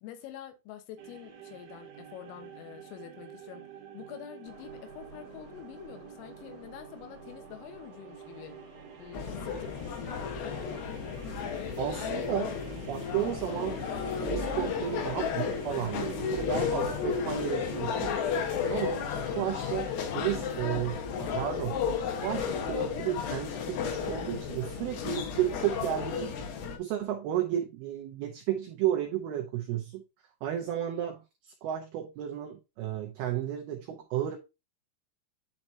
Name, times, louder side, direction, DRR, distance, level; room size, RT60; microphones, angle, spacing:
voice 1, 0.0-3.7 3.9-8.6 9.0-10.5, left 10 dB, 90° left, 3.7 m, -46 dB
sound 1, 1.0-19.9, right 9 dB, 60° right, 3.0 m, -49 dB
sound 2, 4.4-10.4, left 1 dB, 40° left, 1.8 m, -54 dB
sound 3, 9.1-26.8, left 6 dB, 70° left, 2.9 m, -33 dB
voice 2, 11.8-12.6 12.9-13.8 14.2-18.3 18.7-26.4 26.8-30.0 30.4-34.4, right 11 dB, 90° right, 2.2 m, -33 dB
10.5 x 4.5 x 2.7 m
omnidirectional pair, 5.7 m